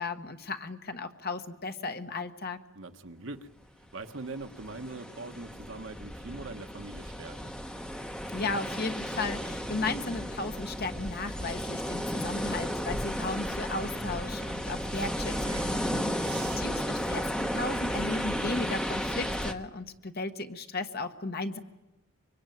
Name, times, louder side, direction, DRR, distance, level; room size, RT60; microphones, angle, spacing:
voice 1, 0.0-2.6 8.3-21.6, left 3 dB, 45° left, 8 dB, 1.3 m, -35 dB
voice 2, 2.7-3.5 3.9-7.5, right 2 dB, 65° right, 7 dB, 1.3 m, -42 dB
sound 1, 4.2-19.5, equal, 5° left, 0.9 m, -34 dB
sound 2, 10.2-18.2, right 7 dB, 85° right, 2.2 m, -51 dB
24.5 x 23.0 x 9.3 m, 1.0 s
head